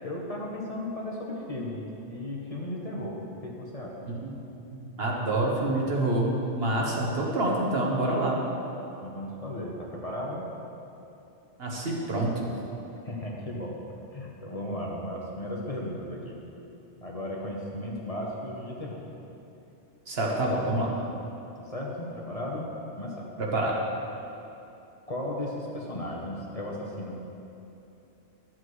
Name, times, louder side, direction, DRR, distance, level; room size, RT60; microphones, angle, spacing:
voice 1, 0.0-4.1 9.0-10.5 12.9-13.8 14.1-16.4 17.0-19.0 21.6-22.7 23.0-23.3 25.1-27.2, left 1 dB, 35° left, -3 dB, 1.0 m, -35 dB
voice 2, 4.7-8.4 11.6-12.5 20.1-20.9 23.4-23.7, right 1 dB, 60° right, -2 dB, 1.4 m, -27 dB
12.0 x 7.5 x 3.2 m, 2.8 s
omnidirectional pair, 1.2 m